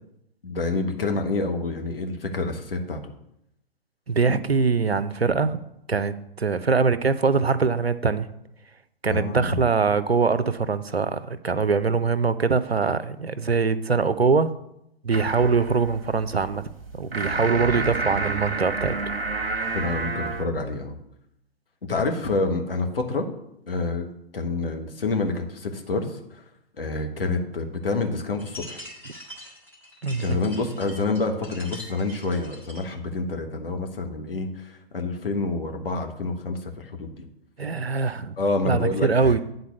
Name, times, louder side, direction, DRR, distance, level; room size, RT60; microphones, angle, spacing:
voice 1, 0.4-3.1 9.1-9.6 19.7-21.0 21.9-23.3 23.7-24.1 24.3-26.4 26.8-28.8 30.2-37.3 38.4-39.3, left 3 dB, 65° left, 4 dB, 1.4 m, -28 dB
voice 2, 4.1-5.6 5.9-8.3 9.0-14.5 15.0-16.6 16.9-19.0 30.0-30.4 37.6-38.3 38.7-39.4, right 4 dB, 85° right, 14 dB, 0.6 m, -23 dB
sound 1, 15.1-20.5, right 3 dB, 65° right, 1.1 m, -29 dB
sound 2, 28.4-33.0, left 1 dB, 5° left, 1.6 m, -43 dB
9.5 x 4.0 x 6.7 m, 0.80 s
figure-of-eight pair, 120°, 30 cm